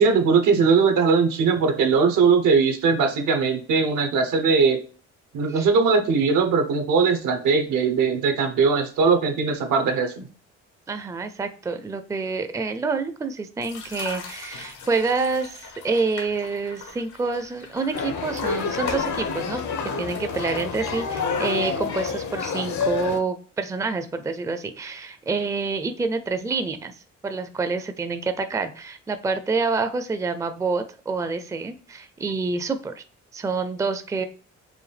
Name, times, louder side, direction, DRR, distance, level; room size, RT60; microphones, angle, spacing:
voice 1, 0.0-4.8 5.3-10.3, right 5 dB, 85° right, 5 dB, 0.9 m, -20 dB
voice 2, 10.9-19.6 20.0-27.0 27.2-33.0 33.3-34.2, right 4 dB, 10° right, 9 dB, 0.4 m, -27 dB
sound 1, 13.6-21.3, left 6 dB, 85° left, 1.1 m, -40 dB
sound 2, 17.9-23.2, left 5 dB, 70° left, 0.8 m, -28 dB
4.9 x 2.3 x 3.2 m, 0.39 s
cardioid pair, 90°, 30 cm